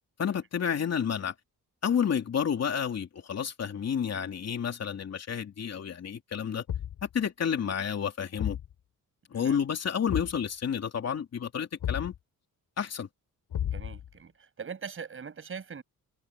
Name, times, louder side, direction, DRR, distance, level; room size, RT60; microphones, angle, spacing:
voice 1, 0.2-1.3 1.8-6.6 7.0-8.6 9.3-12.1 12.8-13.1, left 7 dB, 50° left, 3.1 m, -30 dB
Thump thud, 6.7-7.1 8.4-8.7 10.1-10.4 11.8-12.2 13.5-14.1, left 10 dB, 85° left, 5.1 m, -32 dB
voice 2, 13.7-15.8, right 6 dB, 40° right, 7.4 m, -41 dB
wide cardioid pair, 155°, 33 cm